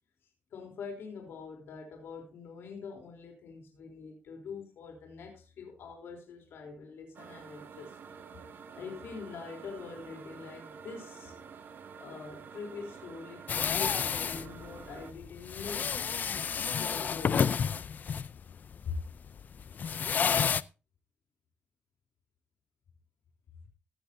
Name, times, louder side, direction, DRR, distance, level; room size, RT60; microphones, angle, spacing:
voice 1, 0.5-8.0 8.7-11.4 12.0-16.0 16.7-17.5 18.9-19.0, left 5 dB, 75° left, 1 dB, 3.5 m, -44 dB
sound 1, 7.1-15.1, right 6 dB, 60° right, 2.1 m, -49 dB
sound 2, 13.5-20.6, left 7 dB, 50° left, 0.5 m, -30 dB
15.5 x 12.5 x 2.7 m, 0.30 s
cardioid pair, 115°, 4 cm